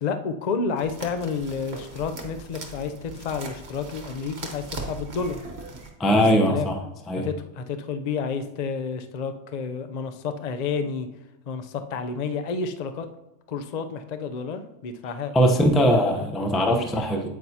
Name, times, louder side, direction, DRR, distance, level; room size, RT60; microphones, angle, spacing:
voice 1, 0.0-5.5 6.1-6.2 6.5-6.7 7.2-11.1 11.5-13.1 13.5-15.3 16.7-16.9 17.1-17.2, left 5 dB, 80° left, 8 dB, 0.3 m, -30 dB
sound 1, 0.8-5.9, right 3 dB, 50° right, 1.3 m, -39 dB
voice 2, 6.0-6.8 7.1-7.3 15.3-17.2, equal, ahead, 3 dB, 0.4 m, -20 dB
8.8 x 8.2 x 2.8 m, 0.95 s
omnidirectional pair, 1.5 m